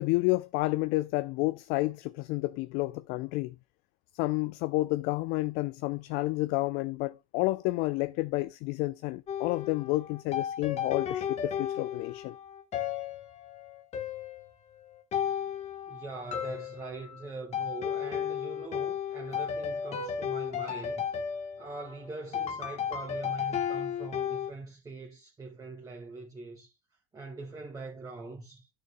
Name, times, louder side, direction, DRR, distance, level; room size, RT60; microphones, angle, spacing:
voice 1, 0.0-3.6 4.1-12.3, left 20 dB, 60° left, 0.4 m, -30 dB
sound 1, 9.3-24.5, left 8 dB, 40° left, 1.2 m, -34 dB
voice 2, 15.9-21.0 21.6-26.7 27.1-28.7, right 3 dB, 20° right, 1.6 m, -42 dB
11.0 x 6.7 x 2.2 m
hypercardioid pair, 95°, 18 cm